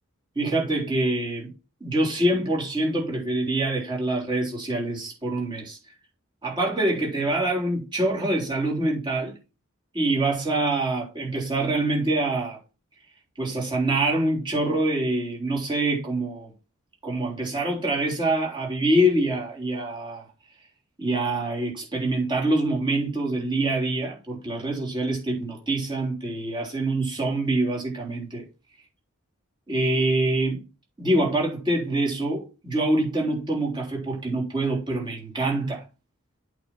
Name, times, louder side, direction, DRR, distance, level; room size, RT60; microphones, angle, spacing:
voice 1, 0.4-1.5 1.8-5.8 6.4-9.3 9.9-12.6 13.4-16.5 17.0-20.2 21.0-28.4 29.7-30.6 31.0-35.8, right 1 dB, 20° right, 3.6 m, -25 dB
8.4 x 4.3 x 6.0 m
head